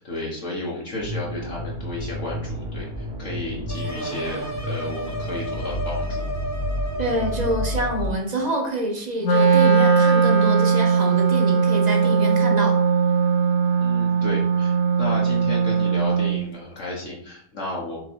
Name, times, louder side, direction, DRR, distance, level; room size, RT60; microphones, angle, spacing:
voice 1, 0.0-6.3 13.8-18.0, left 2 dB, 55° left, -3 dB, 1.6 m, -33 dB
sound 1, 1.0-8.1, equal, 85° right, 1.9 m, -31 dB
sound 2, 3.7-8.2, left 1 dB, 15° left, 0.5 m, -33 dB
voice 2, 7.0-12.8, right 1 dB, 30° right, 2 dB, 1.0 m, -26 dB
Wind instrument woodwind instrument, 9.2-16.4, right 5 dB, 85° left, 1.9 m, -19 dB
6.1 x 3.9 x 4.6 m, 0.67 s
omnidirectional pair, 1.6 m